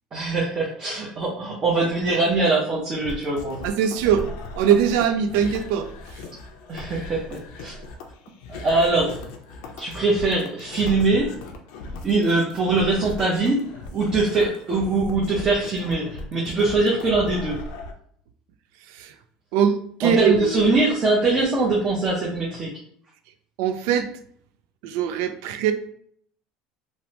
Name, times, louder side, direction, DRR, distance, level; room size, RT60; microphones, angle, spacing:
voice 1, 0.1-3.6 6.7-7.7 8.5-9.2 9.8-11.3 12.0-13.6 13.9-17.6 20.0-22.7, right 3 dB, 30° right, -4 dB, 0.6 m, -22 dB
sound 1, 3.0-17.9, left 2 dB, 75° left, 0.5 m, -38 dB
voice 2, 3.6-4.3 4.5-5.9 18.9-19.1 19.5-20.6 23.6-24.1 24.8-25.7, right 8 dB, 80° right, 9 dB, 0.3 m, -21 dB
3.1 x 2.0 x 2.8 m, 0.65 s
cardioid pair, 140°, 2 cm